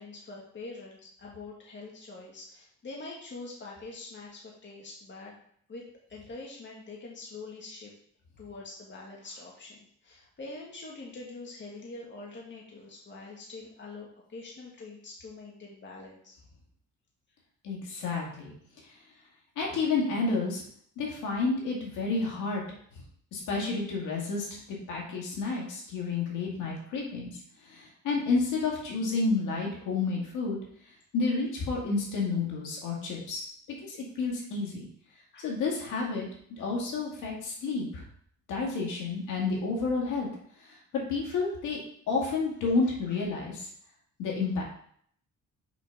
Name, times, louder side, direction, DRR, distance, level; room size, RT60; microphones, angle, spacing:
voice 1, 0.0-5.3 5.7-5.8 6.1-7.9 8.4-16.4 19.2-19.3 35.3-35.5, left 3 dB, 40° left, -3 dB, 1.8 m, -44 dB
voice 2, 17.6-18.5 19.6-20.6 21.0-22.6 23.3-24.6 24.9-27.3 27.6-30.6 31.1-33.4 33.9-34.8 35.4-36.3 36.6-38.0 38.5-40.3 40.6-41.8 42.1-43.7 44.2-44.6, left 4 dB, 85° left, -2 dB, 2.3 m, -30 dB
6.2 x 4.2 x 5.4 m, 0.62 s
cardioid pair, 90°, 30 cm